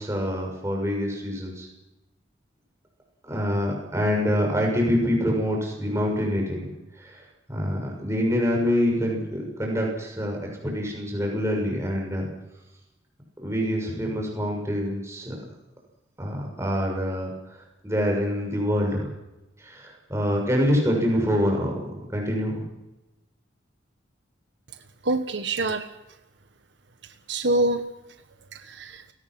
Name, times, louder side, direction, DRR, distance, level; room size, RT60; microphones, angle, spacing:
voice 1, 0.0-1.7 3.2-6.7 7.0-7.2 7.5-12.3 13.4-15.3 16.2-17.3 17.8-19.1 19.6-21.7 22.1-22.6, equal, 15° right, 0 dB, 6.4 m, -25 dB
voice 2, 25.0-25.9 27.0-27.8 28.5-29.0, right 2 dB, 65° right, 8 dB, 1.5 m, -26 dB
29.5 x 18.0 x 6.3 m, 0.99 s
head